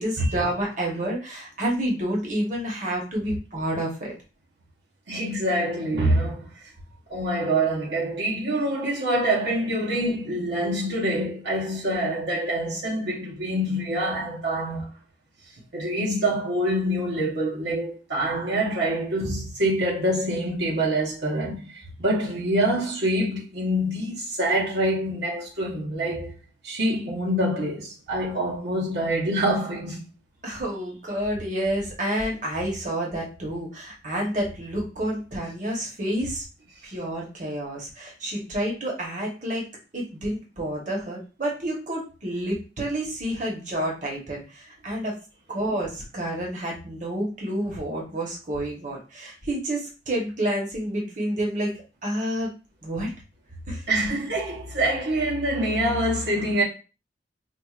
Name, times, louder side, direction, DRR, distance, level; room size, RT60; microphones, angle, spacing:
voice 1, 0.0-4.1 30.4-36.4 36.8-39.6 39.9-45.2 45.5-51.7 52.0-52.5 52.8-53.1 53.7-53.8, right 1 dB, 45° right, 1.0 m, -29 dB
voice 2, 5.1-6.7 7.1-14.9 15.7-26.3 26.6-30.0 53.9-56.6, right 1 dB, 70° right, 0.9 m, -25 dB
4.5 x 2.4 x 2.4 m
head